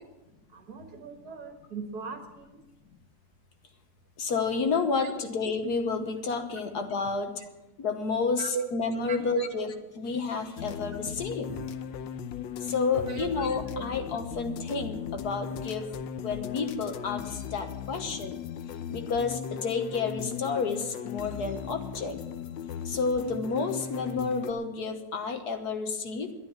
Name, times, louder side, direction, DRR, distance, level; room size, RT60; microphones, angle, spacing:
voice 1, 0.5-2.6 5.0-5.1 8.4-8.6 9.0-9.7 11.5-11.7 13.1-13.3 13.7-13.9, right 5 dB, 60° right, 4 dB, 2.2 m, -37 dB
voice 2, 4.2-7.3 7.8-9.7 10.0-11.5 12.6-15.9 16.2-18.4 18.9-22.2 22.8-26.3, left 4 dB, 60° left, 6 dB, 1.6 m, -30 dB
sound 1, 10.6-24.5, left 8 dB, 80° left, 1.4 m, -37 dB
12.0 x 10.5 x 7.2 m, 1.0 s
omnidirectional pair, 2.0 m